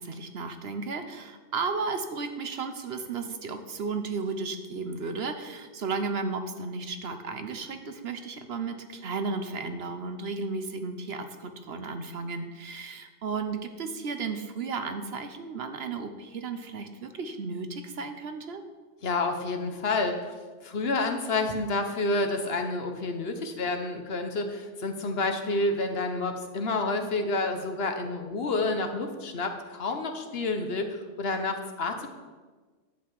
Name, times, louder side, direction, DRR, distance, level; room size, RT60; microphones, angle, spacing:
voice 1, 0.0-18.6, right 4 dB, 65° right, 7 dB, 1.1 m, -34 dB
voice 2, 19.0-20.3 20.6-32.1, left 3 dB, 60° left, 6 dB, 1.2 m, -29 dB
11.0 x 7.9 x 4.7 m, 1.4 s
omnidirectional pair, 1.2 m